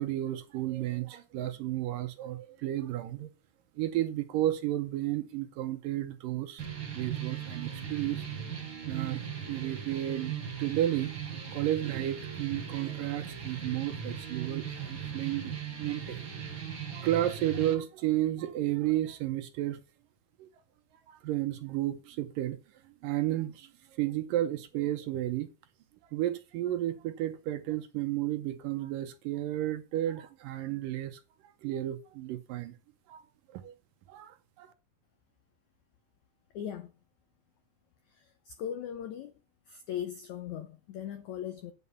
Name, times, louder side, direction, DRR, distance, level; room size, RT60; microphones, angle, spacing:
voice 1, 0.0-3.3 3.8-6.7 6.9-8.3 8.9-10.3 10.6-15.5 15.8-16.2 16.9-19.8 20.4-20.5 21.1-22.6 22.8-25.5 26.1-32.8 33.1-33.2 33.5-33.7 34.1-34.7, right 13 dB, 75° right, 2.2 m, -32 dB
sound 1, 6.6-17.7, right 7 dB, 35° right, 2.6 m, -38 dB
voice 2, 36.5-36.9 38.1-39.4 39.7-41.7, left 9 dB, 85° left, 1.7 m, -39 dB
9.5 x 5.5 x 6.9 m
omnidirectional pair, 4.5 m